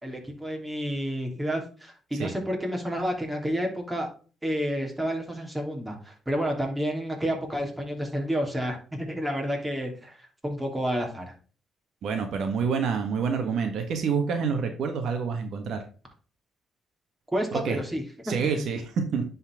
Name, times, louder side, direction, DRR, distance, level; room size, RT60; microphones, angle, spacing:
voice 1, 0.0-4.1 4.4-11.3 17.3-18.5, equal, 10° right, 1 dB, 2.8 m, -30 dB
voice 2, 12.0-15.8 17.5-17.8 18.2-19.2, right 6 dB, 70° right, 5 dB, 1.4 m, -27 dB
10.0 x 4.4 x 3.6 m, 0.37 s
cardioid pair, 90°, 0 cm